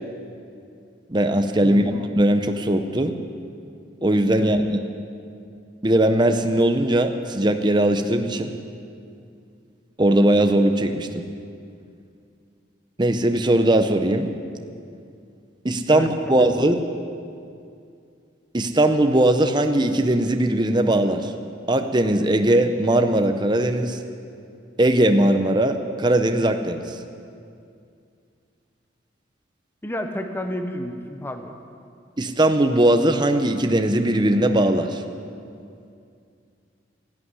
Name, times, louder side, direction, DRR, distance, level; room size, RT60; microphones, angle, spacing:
voice 1, 1.1-3.1 4.0-4.8 5.8-8.5 10.0-11.2 13.0-14.3 15.6-16.8 18.5-21.3 21.7-24.0 24.8-27.0 32.2-35.0, right 1 dB, 25° right, 6 dB, 0.7 m, -19 dB
voice 2, 1.6-2.0 4.4-4.5 15.9-16.7 29.8-31.5, equal, 10° left, 5 dB, 0.8 m, -31 dB
13.0 x 11.0 x 9.7 m, 2.4 s
head